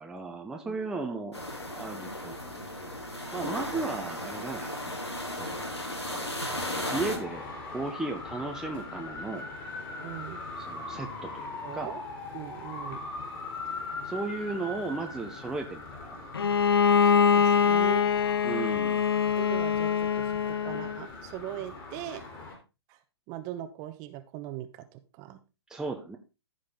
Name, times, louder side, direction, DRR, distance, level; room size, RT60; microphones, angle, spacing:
voice 1, 0.0-1.4 1.6-2.4 3.3-4.8 5.3-5.8 6.9-9.5 10.6-12.0 14.0-16.2 18.4-19.0 25.7-26.2, right 3 dB, 5° right, 2 dB, 0.9 m, -35 dB
sound 1, 1.3-7.2, left 1 dB, 85° left, 2.7 m, -35 dB
Traffic noise roadway noise, 7.0-22.6, left 3 dB, 25° left, 3.4 m, -41 dB
voice 2, 10.0-10.4 11.6-12.0 12.3-13.0 17.0-18.1 19.3-22.2 22.9-23.0 23.3-25.4, right 13 dB, 25° right, 9 dB, 1.1 m, -40 dB
Bowed string instrument, 16.3-21.0, left 7 dB, 65° left, 0.6 m, -24 dB
14.5 x 5.2 x 3.8 m, 0.28 s
figure-of-eight pair, 125°, 14 cm